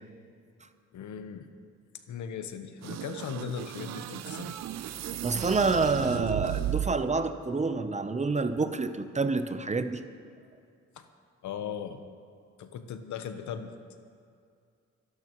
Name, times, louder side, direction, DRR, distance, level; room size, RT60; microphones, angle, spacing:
voice 1, 0.9-1.5 2.1-4.5 11.0-11.1 11.4-12.0 12.6-13.8, left 7 dB, 70° left, 9 dB, 1.0 m, -38 dB
sound 1, 2.8-7.2, right 11 dB, 60° right, 0.6 m, -35 dB
voice 2, 5.2-10.0, right 3 dB, 25° right, 9 dB, 0.8 m, -28 dB
26.0 x 11.5 x 3.1 m, 2.4 s
cardioid pair, 90°, 30 cm